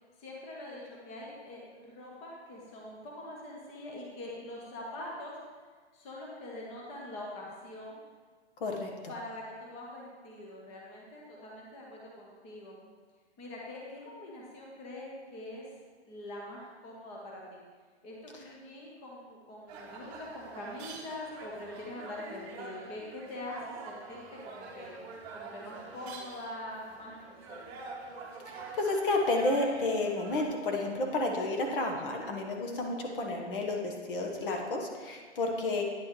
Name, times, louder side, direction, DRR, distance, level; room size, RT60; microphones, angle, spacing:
voice 1, 0.2-5.4 5.9-8.0 9.1-12.8 13.4-15.7 16.0-17.6 18.0-27.2 27.5-27.9, left 1 dB, 20° left, -3 dB, 1.0 m, -44 dB
voice 2, 8.6-8.9 28.5-35.8, left 2 dB, 50° left, 1 dB, 1.1 m, -31 dB
sound 1, 19.7-30.5, right 3 dB, 25° right, 1.0 m, -46 dB
9.6 x 6.2 x 3.1 m, 1.5 s
hypercardioid pair, 150°, 34 cm